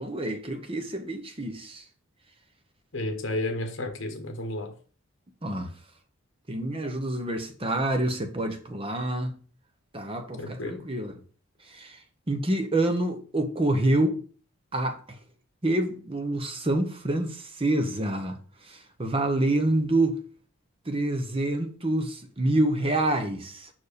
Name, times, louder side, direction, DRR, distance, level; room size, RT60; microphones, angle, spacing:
voice 1, 0.0-1.8 5.4-5.7 6.5-9.3 9.9-11.2 11.7-12.0 12.3-14.2 14.7-15.2 15.6-18.4 18.6-20.2 20.9-23.7, right 1 dB, 25° right, 0.9 m, -27 dB
voice 2, 2.9-4.7 10.4-10.8, left 1 dB, 60° left, 1.2 m, -32 dB
5.6 x 4.6 x 5.0 m
head